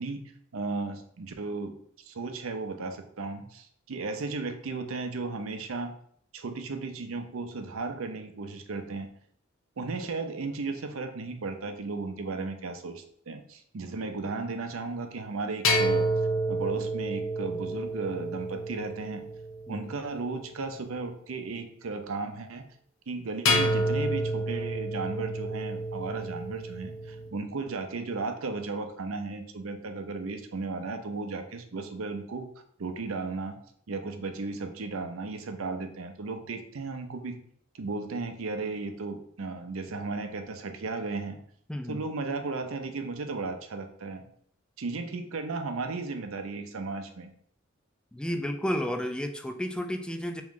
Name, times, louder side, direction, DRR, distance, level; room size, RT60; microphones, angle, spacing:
voice 1, 0.0-5.9 6.3-9.1 9.8-16.1 16.5-19.3 19.7-22.6 23.1-32.5 32.8-33.6 33.9-37.4 37.7-41.4 41.9-44.3 44.8-47.3, right 3 dB, 90° right, 6 dB, 0.6 m, -35 dB
sound 1, 15.6-20.0 23.4-27.3, equal, 70° left, 0.7 m, -29 dB
voice 2, 41.7-42.0 48.1-50.4, equal, 5° left, 5 dB, 0.3 m, -32 dB
3.6 x 3.0 x 3.7 m, 0.63 s
head